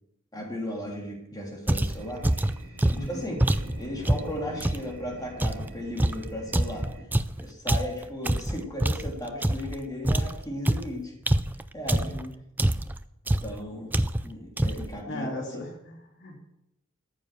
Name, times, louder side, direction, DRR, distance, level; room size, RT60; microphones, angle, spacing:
voice 1, 0.3-2.2 2.9-3.5 3.8-6.9 7.4-11.1 11.7-12.1 13.4-13.9 14.2-15.6, left 1 dB, 20° left, -1 dB, 3.1 m, -36 dB
sound 1, 1.7-4.9 5.4-9.8 10.0-12.3 12.6-13.0 13.3-13.6 13.9-14.3 14.6-15.0, right 1 dB, 10° right, 0.4 m, -26 dB
sound 2, 1.9-7.0, equal, 85° right, 3.2 m, -44 dB
voice 2, 2.9-3.2 11.9-12.3 15.0-16.4, left 1 dB, 60° left, 1 dB, 2.3 m, -37 dB
14.0 x 7.3 x 6.8 m, 0.82 s
head